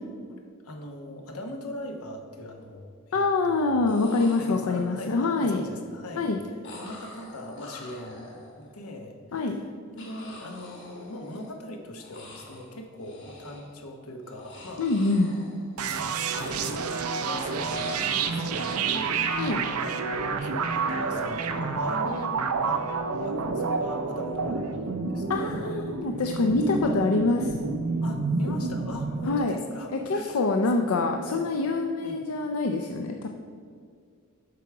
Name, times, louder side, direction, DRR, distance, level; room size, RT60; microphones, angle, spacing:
voice 1, 0.3-3.8 4.4-6.3 6.8-9.6 9.9-14.9 15.9-16.8 17.1-19.5 19.8-20.0 20.4-22.9 23.2-25.8 26.9-27.0 28.0-30.4 30.7-31.5 32.0-32.2, left 1 dB, 90° left, 4 dB, 1.1 m, -41 dB
sound 1, 1.6-1.7 2.0-2.6 3.6-3.7 3.9-5.1 6.6-8.8 10.0-11.7 11.9-12.7 13.0-13.8 14.2-17.2 17.5-19.1, left 2 dB, 55° left, 2.0 m, -46 dB
voice 2, 3.1-5.6 6.2-6.4 9.3-9.6 14.8-15.4 19.4-19.6 25.3-27.5 29.3-29.6 29.9-33.3, left 3 dB, 75° left, 4 dB, 0.5 m, -25 dB
sound 2, 15.8-29.4, right 4 dB, 90° right, 0.6 m, -29 dB
8.3 x 6.0 x 4.7 m, 2.2 s
head